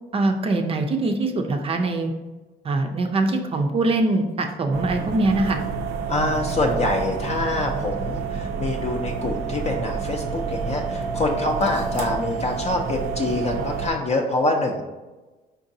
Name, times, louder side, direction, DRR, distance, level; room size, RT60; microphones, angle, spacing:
voice 1, 0.1-2.1 2.6-5.6, right 2 dB, 35° right, 4 dB, 0.4 m, -23 dB
sound 1, 4.7-13.9, right 5 dB, 85° right, 0.5 m, -29 dB
voice 2, 6.1-14.8, left 2 dB, 40° left, 2 dB, 0.5 m, -25 dB
4.5 x 3.9 x 2.7 m, 1.2 s
cardioid pair, 110°, 17 cm